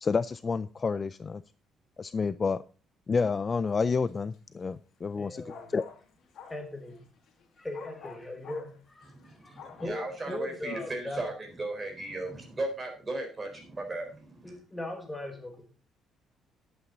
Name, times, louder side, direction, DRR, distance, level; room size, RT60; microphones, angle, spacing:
voice 1, 0.0-1.4 2.0-2.6 3.1-5.4 5.7-5.8, left 5 dB, 25° left, 0.4 m, -29 dB
sound 1, 4.0-4.3 5.5-7.5 7.7-9.8, left 6 dB, 60° left, 2.5 m, -49 dB
voice 2, 5.2-5.7 6.4-7.0 7.6-9.1 9.4-11.3 14.4-15.6, left 2 dB, 10° left, 1.6 m, -39 dB
voice 3, 9.1-14.6, right 2 dB, 20° right, 3.9 m, -36 dB
11.0 x 8.5 x 3.9 m
cardioid pair, 145°, 0 cm